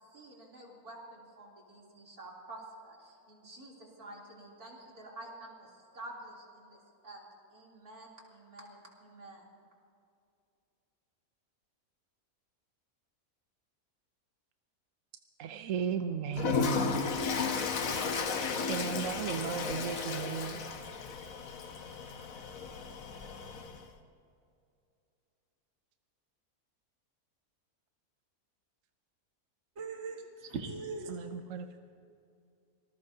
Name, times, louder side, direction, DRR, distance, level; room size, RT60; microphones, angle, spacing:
voice 1, 0.0-7.2 7.5-9.4, right 2 dB, 85° right, -3 dB, 3.7 m, -50 dB
voice 2, 15.4-17.1 18.7-20.6 31.1-31.8, right 7 dB, 65° right, 7 dB, 1.0 m, -35 dB
Toilet flush, 16.3-23.9, left 5 dB, 65° left, 1.4 m, -34 dB
voice 3, 29.8-31.3, right 4 dB, 50° right, 3 dB, 1.5 m, -40 dB
25.5 x 19.5 x 2.8 m, 2.5 s
omnidirectional pair, 1.6 m